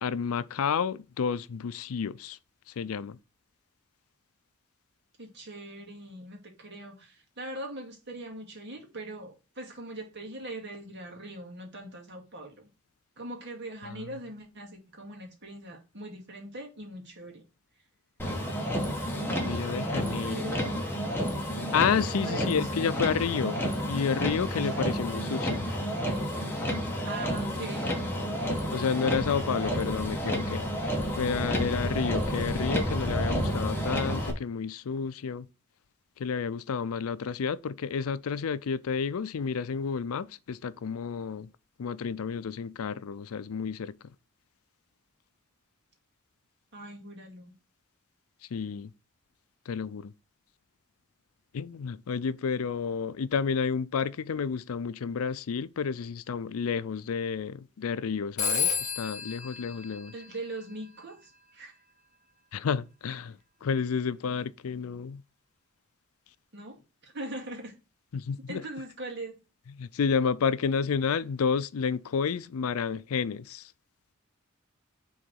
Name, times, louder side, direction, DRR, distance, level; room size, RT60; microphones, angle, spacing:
voice 1, 0.0-2.4 2.8-3.2 13.8-14.1 19.5-20.5 21.7-23.6 23.9-25.6 28.7-30.6 31.2-35.5 36.2-41.5 41.8-44.1 48.5-48.9 49.7-50.1 51.5-60.1 62.5-65.2 68.1-68.7 69.7-73.6, left 6 dB, 80° left, 0.4 m, -30 dB
voice 2, 5.2-12.7 13.2-17.4 20.2-20.9 22.2-22.7 24.6-24.9 27.0-28.2 46.7-47.5 60.1-61.7 66.5-67.7 68.5-69.4, right 2 dB, 55° right, 2.2 m, -41 dB
Motor vehicle (road), 18.2-34.3, equal, 10° left, 1.4 m, -30 dB
Telephone, 58.4-60.9, left 6 dB, 35° left, 1.8 m, -32 dB
6.5 x 3.9 x 6.2 m
head